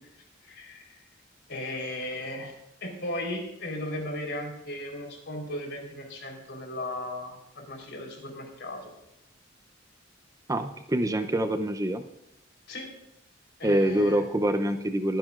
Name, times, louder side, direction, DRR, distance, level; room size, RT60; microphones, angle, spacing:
voice 1, 0.4-1.0 1.5-8.9 12.7-12.9 13.6-14.2, left 1 dB, 65° left, 1 dB, 4.0 m, -36 dB
voice 2, 10.5-12.0 13.6-15.2, right 1 dB, 15° right, 8 dB, 0.6 m, -25 dB
23.0 x 10.0 x 2.5 m, 0.89 s
head